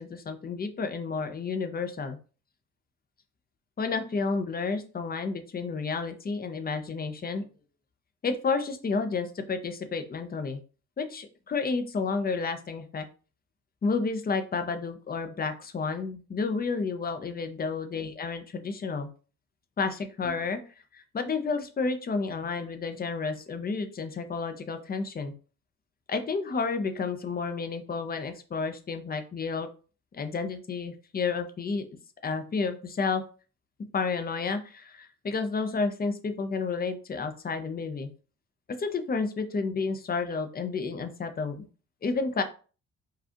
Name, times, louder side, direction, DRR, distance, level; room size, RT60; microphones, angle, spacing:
voice 1, 0.0-2.2 3.8-7.4 8.2-10.6 11.0-13.1 13.8-19.1 19.8-20.6 20.9-25.3 26.1-29.7 30.1-31.8 32.2-33.2 33.9-38.1 38.7-41.7 42.0-42.4, left 4 dB, 30° left, 8 dB, 0.7 m, -31 dB
4.7 x 2.4 x 2.9 m, 0.37 s
cardioid pair, 90°, 30 cm